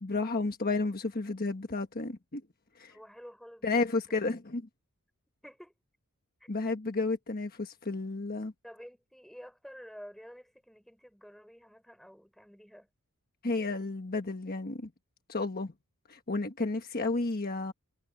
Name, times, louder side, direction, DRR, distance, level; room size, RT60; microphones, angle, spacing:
voice 1, 0.0-2.4 2.8-3.0 3.6-4.7 6.5-8.5 13.4-14.9 15.3-15.7 16.1-17.7, left 3 dB, 45° left, 1.3 m, -32 dB
voice 2, 2.9-4.2 5.4-5.7 6.4-6.5 8.6-12.9, equal, ahead, 4.7 m, -50 dB
head